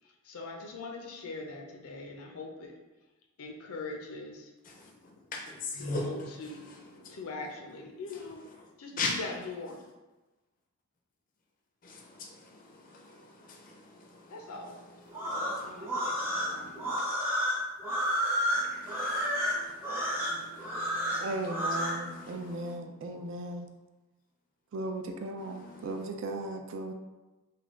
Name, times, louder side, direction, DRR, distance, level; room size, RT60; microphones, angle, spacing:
voice 1, 0.0-2.7 3.4-4.5 5.8-6.7 7.1-8.4 8.8-9.8 14.3-14.8 15.3-17.3, left 3 dB, 90° left, 2 dB, 0.5 m, -42 dB
voice 2, 4.6-7.5 8.1-8.2 8.6-8.7 9.0-9.1 11.8-17.0 18.5-22.8 25.4-26.1, left 3 dB, 40° left, 0 dB, 0.4 m, -42 dB
sound 1, 15.1-22.0, equal, 10° right, 0.6 m, -30 dB
voice 3, 21.2-23.7 24.7-26.9, right 2 dB, 60° right, 4 dB, 0.3 m, -37 dB
3.3 x 2.3 x 3.6 m, 1.1 s
head